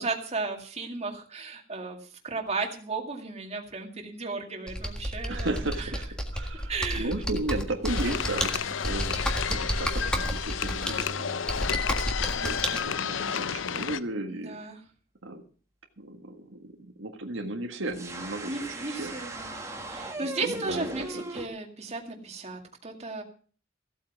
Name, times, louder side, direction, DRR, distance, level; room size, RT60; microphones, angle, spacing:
voice 1, 0.0-2.0 2.2-5.9 6.7-7.1 12.4-12.5 13.3-13.4 14.2-14.8 18.5-19.6 19.9-23.2, right 3 dB, 35° right, 2 dB, 2.2 m, -35 dB
Computer keyboard, 4.7-12.8, equal, 5° left, 1.8 m, -31 dB
voice 2, 5.3-11.4 12.2-14.6 15.2-15.4 16.0-19.1 20.2-20.9 21.1-21.2, right 2 dB, 80° right, 4 dB, 1.6 m, -35 dB
sound 1, 7.9-14.0, left 7 dB, 85° left, 0.6 m, -31 dB
sound 2, 17.9-21.5, right 2 dB, 15° right, 2.0 m, -38 dB
15.5 x 8.5 x 6.0 m, 0.42 s
head